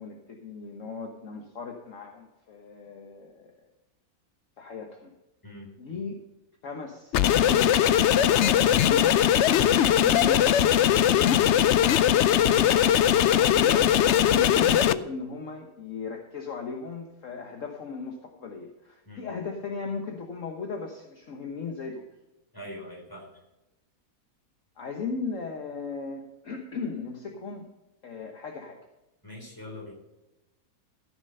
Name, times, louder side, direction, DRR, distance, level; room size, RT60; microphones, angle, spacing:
voice 1, 0.0-3.5 4.6-5.1 5.8-6.2 6.6-7.9 8.2-11.5 12.4-22.0 24.8-27.7 28.0-28.8, left 4 dB, 55° left, 3 dB, 1.5 m, -37 dB
voice 2, 5.4-6.0 19.0-19.3 22.5-23.4 29.2-29.9, left 1 dB, 10° left, -1 dB, 4.1 m, -43 dB
sound 1, 7.1-14.9, left 10 dB, 70° left, 0.6 m, -20 dB
14.5 x 6.7 x 5.5 m, 0.99 s
omnidirectional pair, 1.7 m